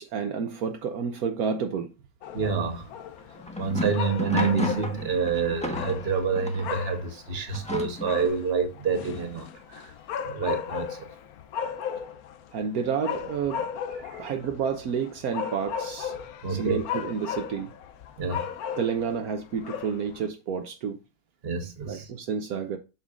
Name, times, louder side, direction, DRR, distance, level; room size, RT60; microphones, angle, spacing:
voice 1, 0.0-1.9 12.5-13.6 14.2-16.1 16.5-17.7 18.8-21.0 21.9-22.8, right 6 dB, 75° right, 1.2 m, -30 dB
sound 1, 2.2-20.3, left 7 dB, 75° left, 1.1 m, -36 dB
voice 2, 2.3-2.9 3.6-9.9 10.2-11.0 14.0-14.1 16.4-16.8 18.2-18.5 21.4-22.1, right 5 dB, 40° right, 1.4 m, -28 dB
sound 2, 3.2-6.8 7.5-8.3, left 1 dB, 5° left, 1.0 m, -33 dB
8.0 x 5.9 x 2.4 m
omnidirectional pair, 1.6 m